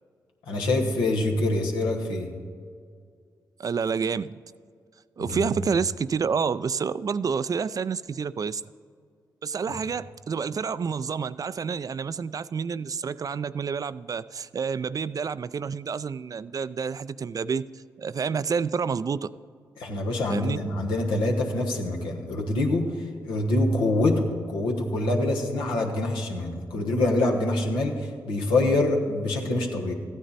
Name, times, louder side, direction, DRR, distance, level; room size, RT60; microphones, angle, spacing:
voice 1, 0.5-2.3 5.2-5.5 19.8-22.9 23.2-29.9, left 2 dB, 85° left, 1 dB, 1.3 m, -25 dB
voice 2, 3.6-4.4 5.2-8.6 9.4-17.7 18.0-19.3 20.3-20.6, right 6 dB, 45° right, 16 dB, 0.4 m, -28 dB
14.5 x 9.5 x 4.1 m, 2.2 s
supercardioid pair, 40°, 8 cm